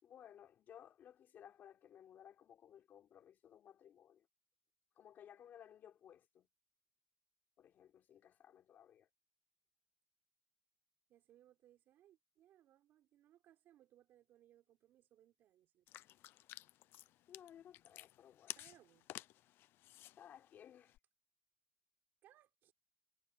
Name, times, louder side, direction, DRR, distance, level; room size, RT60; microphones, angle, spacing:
voice 1, 0.0-4.3 5.0-6.5 7.6-9.1 17.3-18.6 20.2-21.0, left 9 dB, 50° left, 4.1 m, -59 dB
voice 2, 11.1-15.9 18.5-19.2 22.2-22.7, right 12 dB, 65° right, 3.7 m, -68 dB
sound 1, 15.9-21.0, left 15 dB, 70° left, 0.6 m, -54 dB
cardioid pair, 125°, 4 cm